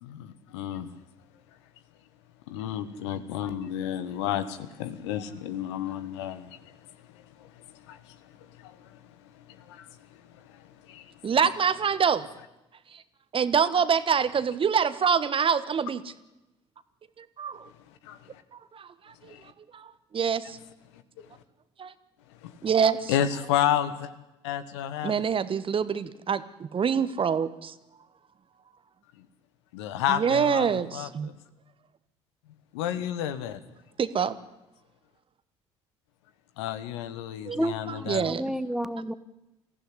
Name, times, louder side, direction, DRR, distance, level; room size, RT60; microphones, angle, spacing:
voice 1, 0.0-0.9 2.5-6.6 7.4-7.5 7.9-8.2 8.6-9.0 9.7-9.9 10.5-11.1 18.0-18.4 19.3-19.4 21.2-21.3 22.4-22.5 23.1-24.1 24.4-25.2 29.7-31.4 32.7-33.6 36.6-38.3, left 10 dB, 70° left, 12 dB, 1.4 m, -31 dB
voice 2, 11.2-12.2 12.9-13.0 13.3-16.0 17.2-17.6 18.7-19.4 19.7-20.6 21.8-21.9 22.6-23.1 25.0-27.7 30.1-31.3 34.0-34.4 37.4-37.6 37.9-38.4, right 7 dB, 35° right, 14 dB, 1.3 m, -26 dB
voice 3, 37.5-39.1, right 1 dB, 5° right, 13 dB, 1.4 m, -31 dB
23.0 x 15.0 x 9.7 m, 0.96 s
figure-of-eight pair, 55°, 15 cm